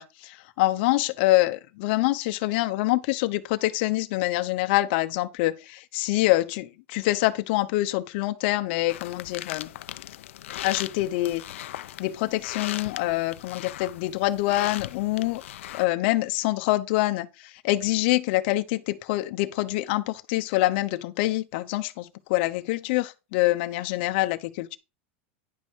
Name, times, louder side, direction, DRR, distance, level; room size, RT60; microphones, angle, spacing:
voice 1, 0.0-9.7 10.6-11.4 12.0-15.4 15.7-17.3 17.6-24.8, left 18 dB, 55° left, 0.9 m, -25 dB
sound 1, 8.9-15.8, left 13 dB, 85° left, 0.6 m, -38 dB
10.5 x 5.3 x 4.7 m
supercardioid pair, 145°, 7 cm